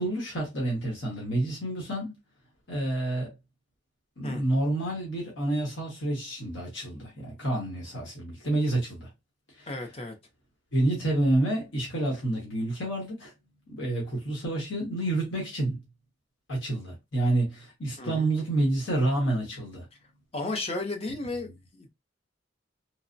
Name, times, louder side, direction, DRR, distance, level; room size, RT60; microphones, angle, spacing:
voice 1, 0.0-2.1 2.7-3.3 4.2-9.1 9.5-9.7 10.7-13.3 13.7-15.8 16.5-19.9, right 1 dB, 70° left, 1.1 m, -28 dB
voice 2, 9.7-10.2 18.0-18.3 20.3-21.9, left 2 dB, 30° left, 0.6 m, -34 dB
3.1 x 2.0 x 2.5 m
head